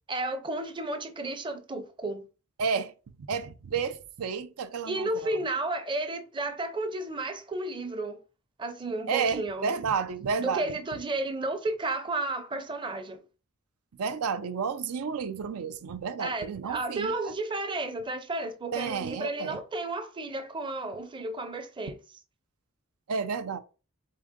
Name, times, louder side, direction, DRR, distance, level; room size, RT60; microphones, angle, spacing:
voice 1, 0.1-2.2 4.8-8.2 8.6-9.7 10.4-13.2 16.2-22.0, right 2 dB, 20° right, 0.5 m, -32 dB
voice 2, 2.6-2.9 3.3-5.4 9.1-10.8 14.0-17.3 18.7-19.6 23.1-23.6, right 5 dB, 85° right, 0.5 m, -31 dB
3.8 x 3.7 x 3.6 m
head